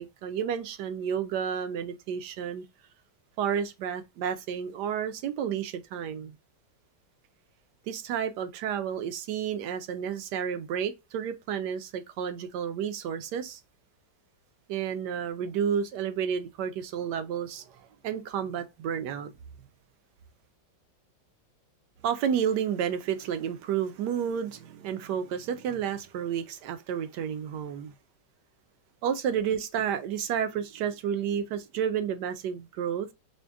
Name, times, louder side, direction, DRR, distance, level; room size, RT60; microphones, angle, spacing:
voice 1, 0.0-2.6 3.4-6.3 7.9-13.6 14.7-19.3 22.0-27.9 29.0-33.1, right 8 dB, 75° right, 1.2 m, -31 dB
5.1 x 2.2 x 3.5 m
omnidirectional pair, 1.9 m